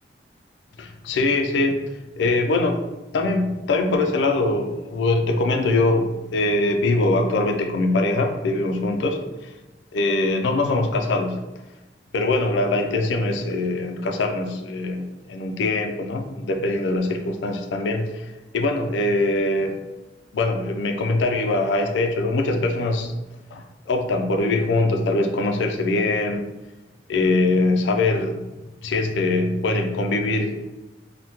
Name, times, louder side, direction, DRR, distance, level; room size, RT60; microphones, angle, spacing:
voice 1, 0.8-1.8 2.2-2.8 3.1-9.2 9.9-11.4 12.1-19.8 20.3-23.1 23.5-26.5 27.1-28.5 28.8-30.5, left 2 dB, 80° left, 4 dB, 0.4 m, -22 dB
3.4 x 2.1 x 2.8 m, 1.1 s
head